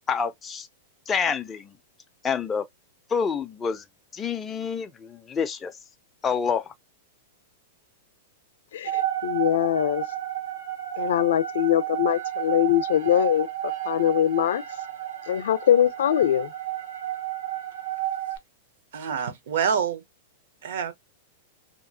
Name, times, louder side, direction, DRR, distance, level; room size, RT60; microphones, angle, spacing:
voice 1, 0.1-0.7 1.1-1.7 2.2-2.7 3.1-3.8 4.1-5.8 6.2-6.7, left 6 dB, 10° left, 0.3 m, -27 dB
voice 2, 8.7-10.0 11.0-14.6 15.3-16.5, left 11 dB, 80° left, 0.5 m, -22 dB
sound 1, 8.9-18.4, right 13 dB, 85° right, 1.2 m, -32 dB
voice 3, 18.9-20.0 20.6-20.9, right 7 dB, 65° right, 0.7 m, -26 dB
2.8 x 2.4 x 2.6 m
supercardioid pair, 170°, 0 cm